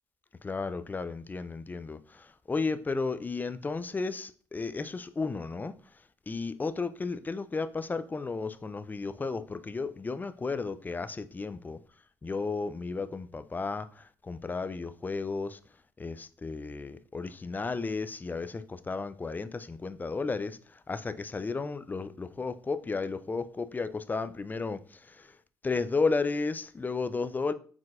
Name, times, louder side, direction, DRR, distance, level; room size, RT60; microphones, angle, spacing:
voice 1, 0.4-5.7 6.3-11.8 12.2-15.6 16.0-20.6 20.9-24.8 25.1-25.3 25.6-27.5, left 4 dB, 20° left, 0.4 m, -33 dB
4.4 x 3.9 x 2.5 m
supercardioid pair, 65°, 9 cm